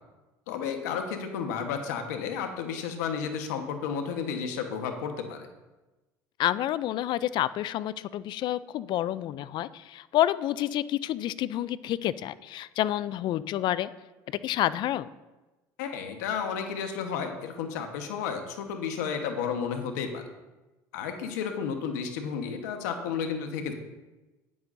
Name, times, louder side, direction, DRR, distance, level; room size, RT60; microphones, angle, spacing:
voice 1, 0.5-5.5 15.8-20.2 20.9-23.7, left 6 dB, 90° left, 5 dB, 1.3 m, -32 dB
voice 2, 6.4-13.9 14.3-15.1, left 13 dB, 55° left, 17 dB, 0.4 m, -29 dB
12.5 x 9.8 x 2.7 m, 1.1 s
supercardioid pair, 90°, 9 cm